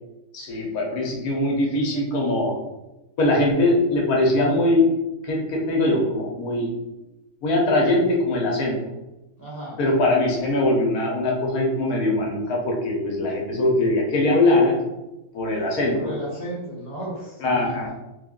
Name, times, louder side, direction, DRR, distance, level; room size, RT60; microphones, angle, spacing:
voice 1, 0.3-2.6 3.2-4.9 5.2-6.7 7.4-8.8 9.8-14.8 15.3-16.1 17.4-17.9, left 2 dB, 75° left, -1 dB, 1.3 m, -21 dB
voice 2, 9.4-9.8 10.2-10.3 15.9-17.8, right 1 dB, 15° right, -7 dB, 1.0 m, -34 dB
3.4 x 2.4 x 3.6 m, 0.98 s
omnidirectional pair, 1.6 m